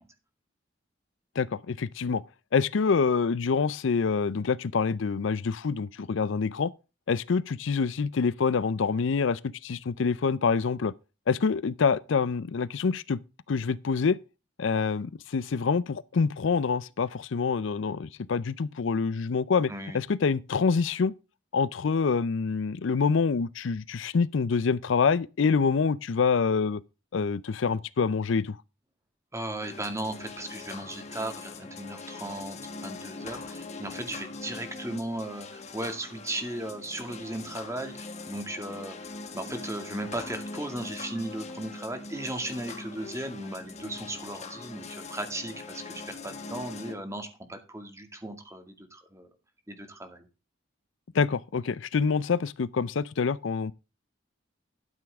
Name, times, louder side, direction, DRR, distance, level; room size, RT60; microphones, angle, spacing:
voice 1, 1.4-2.2 2.5-6.7 7.1-10.9 11.3-13.2 13.5-14.2 14.6-21.1 21.5-26.8 27.1-28.6 51.1-53.7, left 5 dB, 65° left, 0.5 m, -26 dB
voice 2, 19.7-20.0 29.3-38.9 39.3-49.3 49.7-50.3, right 1 dB, 15° right, 2.0 m, -36 dB
sound 1, 29.6-46.9, left 3 dB, 35° left, 1.7 m, -42 dB
12.0 x 9.3 x 3.5 m
head